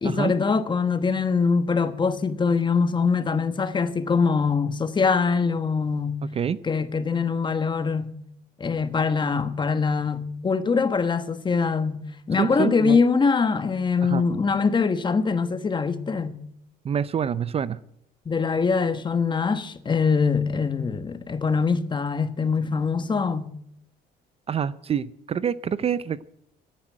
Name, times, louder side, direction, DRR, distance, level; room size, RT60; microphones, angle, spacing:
voice 1, 0.0-6.2 6.6-8.1 8.6-16.4 18.2-23.5, left 5 dB, 25° left, 1.3 m, -23 dB
voice 2, 12.4-13.0 14.0-14.2 16.8-17.8 24.5-26.2, right 8 dB, 35° right, 0.5 m, -26 dB
15.0 x 9.9 x 9.1 m
cardioid pair, 110°, 17 cm